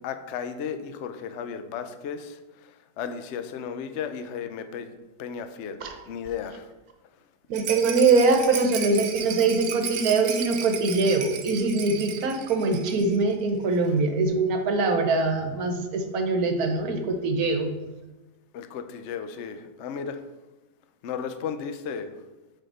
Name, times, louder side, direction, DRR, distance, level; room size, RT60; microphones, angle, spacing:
voice 1, 0.0-6.7 13.6-13.9 18.5-20.2 21.0-22.1, left 7 dB, 70° left, 9 dB, 0.6 m, -35 dB
voice 2, 7.5-17.7, right 3 dB, 65° right, 5 dB, 1.3 m, -23 dB
Rattle, 7.5-13.2 13.5-13.6 13.9-14.0, right 7 dB, 85° right, 1.5 m, -34 dB
6.3 x 4.3 x 5.4 m, 1.1 s
omnidirectional pair, 1.8 m